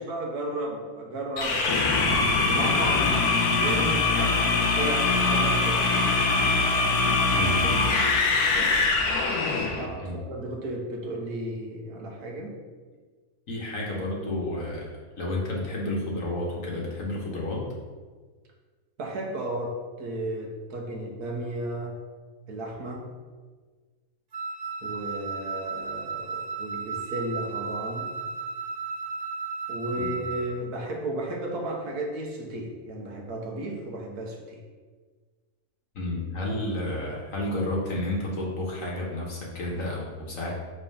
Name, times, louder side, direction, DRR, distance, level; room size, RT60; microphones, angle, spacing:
voice 1, 0.0-2.0 2.5-5.9 7.2-7.5 8.5-8.9 9.4-12.5 19.0-22.0 22.5-23.1 24.8-28.1 29.7-34.6, right 1 dB, 85° right, 0 dB, 1.6 m, -34 dB
sound 1, 1.4-9.9, left 3 dB, 85° left, 1.4 m, -23 dB
voice 2, 7.3-7.7 10.0-10.2 13.5-14.9 15.2-17.7 30.0-30.2 35.9-40.5, left 1 dB, 60° left, -3 dB, 1.8 m, -31 dB
Wind instrument woodwind instrument, 24.3-30.5, right 5 dB, 65° right, 0.4 m, -34 dB
5.4 x 4.4 x 5.5 m, 1.5 s
omnidirectional pair, 1.6 m